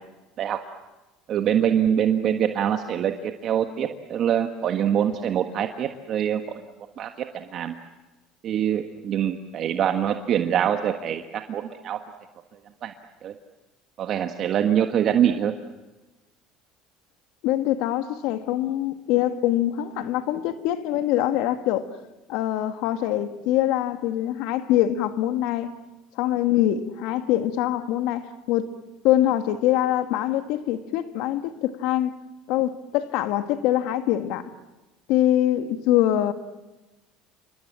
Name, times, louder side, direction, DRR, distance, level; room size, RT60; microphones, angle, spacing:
voice 1, 1.3-6.6 7.0-7.7 8.4-12.0 12.8-12.9 13.2-13.3 14.0-15.5, right 9 dB, 50° right, 1.6 m, -24 dB
voice 2, 17.4-21.9 22.3-25.7 26.2-28.7 29.0-32.1 32.5-34.5 35.1-36.3, left 12 dB, 75° left, 1.8 m, -24 dB
28.5 x 25.0 x 7.6 m
supercardioid pair, 100°, 0 cm